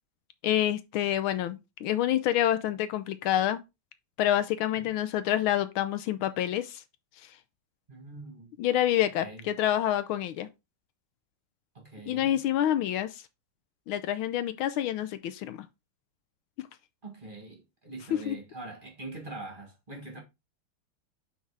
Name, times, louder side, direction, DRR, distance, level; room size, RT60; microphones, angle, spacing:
voice 1, 0.4-3.6 4.2-6.8 8.6-10.5 12.1-13.2 13.9-15.6 18.1-18.4, left 12 dB, 80° left, 1.4 m, -27 dB
voice 2, 7.9-8.5 9.2-9.4 11.8-12.4 17.0-20.2, right 2 dB, 25° right, 1.7 m, -43 dB
5.8 x 4.2 x 4.7 m
omnidirectional pair, 2.3 m